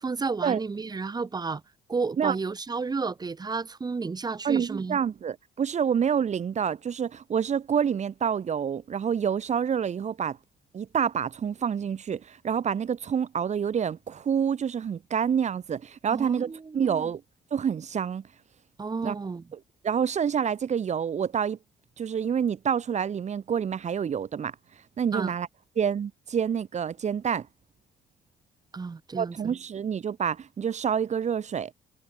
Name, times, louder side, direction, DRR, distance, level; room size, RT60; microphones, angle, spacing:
voice 1, 0.0-1.6 1.9-5.0 16.1-17.1 18.8-19.4 25.1-25.3 28.7-29.5, right 4 dB, 25° right, 1.6 m, -32 dB
voice 2, 4.4-10.4 10.7-17.2 17.5-18.2 19.0-19.2 19.5-21.6 22.0-24.6 25.0-25.5 25.8-27.5 29.2-31.7, right 7 dB, 45° right, 2.4 m, -27 dB
cardioid pair, 95°, 16 cm